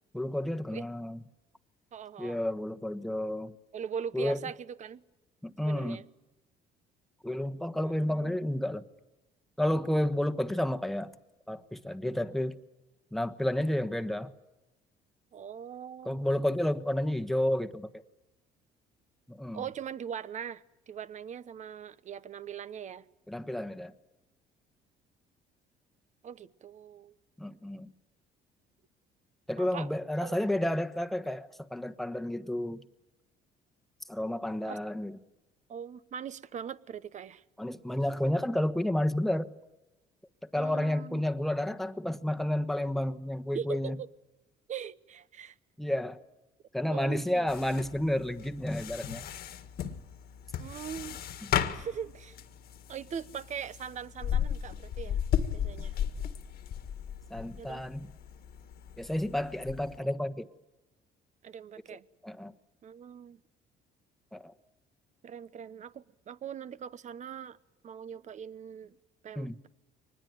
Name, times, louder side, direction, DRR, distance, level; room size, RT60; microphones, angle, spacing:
voice 1, 0.1-1.2 2.2-3.6 4.1-4.4 5.4-6.0 7.2-8.8 9.6-11.1 11.5-12.6 13.1-14.3 16.0-18.0 19.3-19.6 23.3-23.9 27.4-27.9 29.5-32.8 34.1-35.2 37.6-39.5 40.5-44.0 45.8-46.2 46.7-49.3 51.4-51.8 57.3-58.1 59.0-60.5 62.2-62.5 64.3-64.5 69.4-69.6, left 1 dB, ahead, 8 dB, 1.3 m, -31 dB
voice 2, 1.9-2.4 3.7-5.0 5.6-6.0 7.8-8.3 15.3-16.2 19.5-23.0 26.2-27.1 29.6-29.9 30.2-30.4 34.7-34.8 35.7-37.4 40.5-41.2 43.5-44.1 44.7-45.6 46.9-47.5 50.6-51.2 51.7-52.4 52.9-55.2 55.5-56.0 57.6-57.8 61.4-62.0 62.8-63.4 65.2-67.6 67.8-69.0 69.2-69.7, right 8 dB, 45° right, 16 dB, 1.0 m, -41 dB
sound 1, 47.5-60.0, left 9 dB, 65° left, 1.9 m, -36 dB
24.0 x 20.0 x 9.2 m, 1.0 s
cardioid pair, 110°, 17 cm